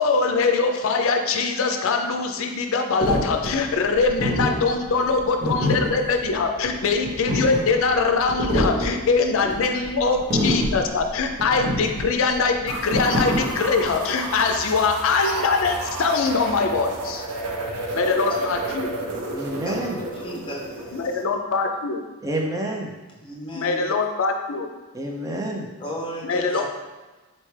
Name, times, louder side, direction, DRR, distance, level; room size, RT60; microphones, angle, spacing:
voice 1, 0.0-17.2 17.9-18.9 20.9-22.0 23.6-24.7 26.2-26.7, left 4 dB, 65° left, 5 dB, 0.4 m, -22 dB
sound 1, 3.0-14.0, equal, 50° right, 1.1 m, -26 dB
voice 2, 5.5-5.9 9.4-10.1 19.6-21.1 23.2-23.8 25.8-26.7, left 1 dB, 25° left, -3 dB, 0.8 m, -36 dB
sound 2, 12.7-21.2, right 2 dB, 90° right, 0.6 m, -31 dB
voice 3, 19.3-20.0 22.2-22.9 24.9-25.7, right 1 dB, 15° right, 0 dB, 0.5 m, -28 dB
4.1 x 3.3 x 3.2 m, 1.2 s
head